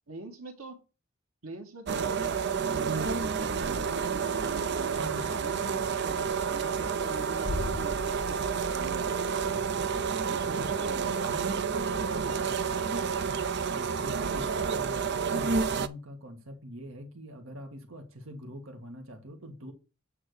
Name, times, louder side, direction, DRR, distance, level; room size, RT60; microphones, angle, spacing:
voice 1, 0.1-0.8 1.4-9.6 10.3-11.2 12.1-12.4, right 2 dB, 90° right, 1.9 m, -43 dB
sound 1, 1.9-15.9, right 6 dB, 55° right, 0.6 m, -30 dB
voice 2, 4.9-5.3 10.5-10.7 11.2-12.5 13.2-19.7, right 1 dB, 70° right, 1.7 m, -42 dB
sound 2, 7.4-13.2 13.4-13.5, left 2 dB, 85° left, 2.1 m, -41 dB
8.8 x 3.6 x 6.4 m
head